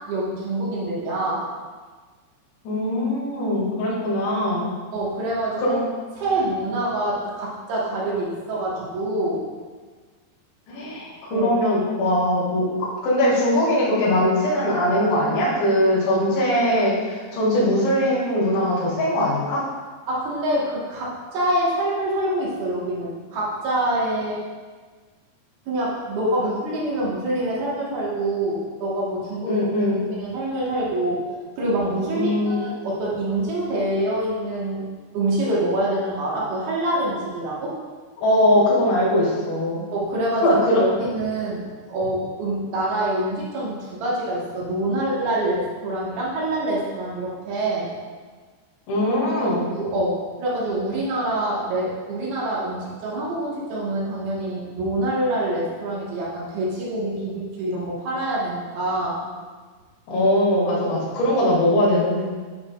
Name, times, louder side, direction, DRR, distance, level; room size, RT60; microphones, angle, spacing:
voice 1, 0.0-1.5 4.9-5.8 6.2-9.5 11.3-11.5 20.1-24.4 25.7-29.6 30.1-34.9 35.1-37.7 39.9-40.5 40.8-47.9 49.3-59.3 60.8-60.9, right 1 dB, 65° right, -6 dB, 3.1 m, -26 dB
voice 2, 2.6-4.7 5.6-5.8 10.7-19.6 29.5-30.0 32.1-32.7 38.2-39.8 40.4-40.8 48.9-49.7 60.1-62.2, left 1 dB, 85° left, -6 dB, 4.6 m, -21 dB
10.5 x 6.2 x 2.4 m, 1.5 s
omnidirectional pair, 5.1 m